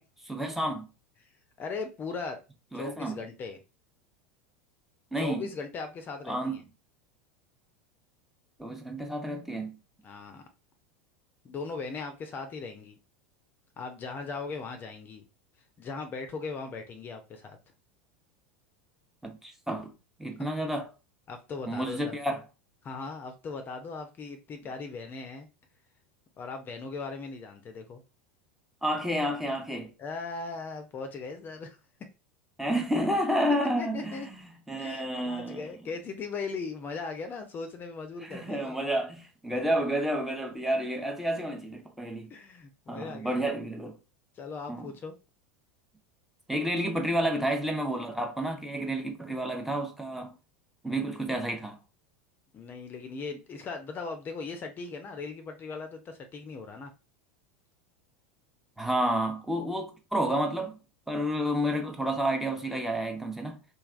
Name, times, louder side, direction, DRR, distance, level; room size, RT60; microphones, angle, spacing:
voice 1, 0.3-0.9 2.7-3.2 5.1-5.5 6.3-6.6 8.6-9.7 19.2-19.9 20.2-20.9 21.7-22.4 28.8-29.9 32.6-35.6 38.2-42.3 42.9-43.9 44.7-44.9 46.5-50.3 50.8-51.8 58.8-60.8 61.1-63.6, right 1 dB, 5° right, 0.7 m, -30 dB
voice 2, 1.6-2.4 2.7-3.6 5.2-6.6 10.0-10.4 11.4-13.0 13.8-15.2 15.8-17.6 21.3-22.1 22.8-25.5 26.4-28.0 30.0-31.8 33.8-34.3 34.8-38.8 42.3-43.4 44.4-45.1 52.5-56.9, left 4 dB, 30° left, 0.6 m, -38 dB
3.2 x 2.3 x 2.4 m
hypercardioid pair, 90°, 6 cm